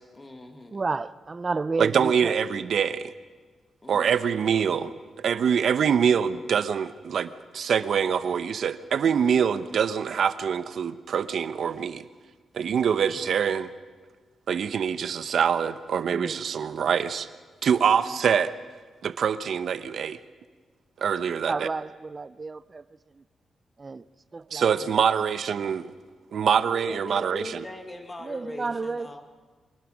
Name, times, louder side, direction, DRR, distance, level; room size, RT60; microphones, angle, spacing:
voice 1, 0.1-0.8 3.8-4.1 21.2-21.5 26.8-29.2, left 2 dB, 20° left, 1.8 m, -40 dB
voice 2, 0.7-2.3 16.1-16.4 21.5-22.8 23.1-23.2 23.8-24.1 24.3-24.7 28.2-29.1, right 3 dB, 30° right, 0.6 m, -31 dB
voice 3, 1.8-3.1 3.9-12.1 12.5-13.7 14.5-17.3 17.6-18.5 19.0-20.2 21.0-21.7 24.5-25.9 26.3-27.6, right 7 dB, 65° right, 0.8 m, -25 dB
24.5 x 19.5 x 6.3 m
wide cardioid pair, 125°, 0 cm